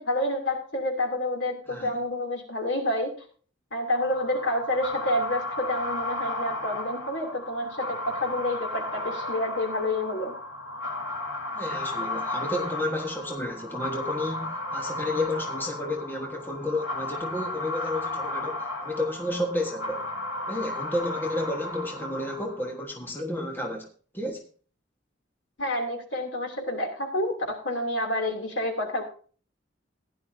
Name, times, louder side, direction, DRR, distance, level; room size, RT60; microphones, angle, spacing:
voice 1, 0.0-3.1 3.7-10.3 25.6-29.0, left 1 dB, 70° left, 2 dB, 2.8 m, -29 dB
sound 1, 3.9-22.8, left 2 dB, 85° left, 2.2 m, -34 dB
voice 2, 11.5-20.1 20.5-23.9 24.1-24.5, left 1 dB, 10° left, 1 dB, 1.4 m, -31 dB
15.5 x 11.0 x 2.7 m, 0.41 s
head